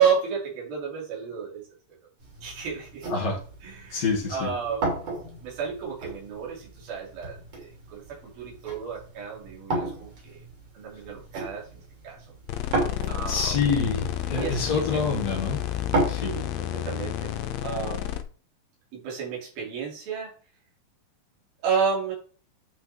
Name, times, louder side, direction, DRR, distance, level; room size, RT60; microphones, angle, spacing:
voice 1, 0.0-1.6 2.4-3.1 3.6-4.0 4.3-5.0 5.4-10.4 10.7-12.3 13.1-13.6 14.3-15.0 16.2-17.3 17.6-18.1 18.9-20.3 21.6-22.1, right 6 dB, 85° right, -4 dB, 4.9 m, -31 dB
sound 1, 2.2-16.1, right 2 dB, 45° right, 3.9 m, -34 dB
voice 2, 3.9-4.5 13.2-15.6 16.1-16.3, left 5 dB, 50° left, -2 dB, 3.9 m, -27 dB
sound 2, 12.5-18.2, left 12 dB, 85° left, 1.5 m, -31 dB
10.0 x 5.7 x 3.6 m, 0.41 s
omnidirectional pair, 4.1 m